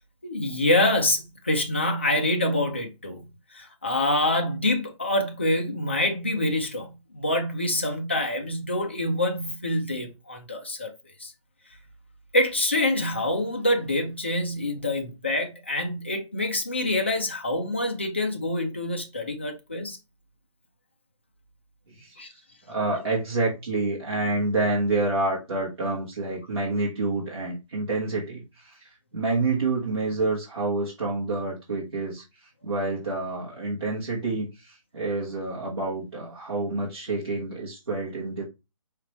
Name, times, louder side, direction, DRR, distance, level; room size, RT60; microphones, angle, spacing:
voice 1, 0.2-10.9 11.2-11.3 12.3-20.0 22.2-22.3, left 1 dB, 20° left, 0.5 m, -26 dB
voice 2, 21.9-22.4 22.7-32.2 32.6-38.4, right 2 dB, 50° right, 1.3 m, -28 dB
5.0 x 3.2 x 2.9 m
hypercardioid pair, 180°, 18 cm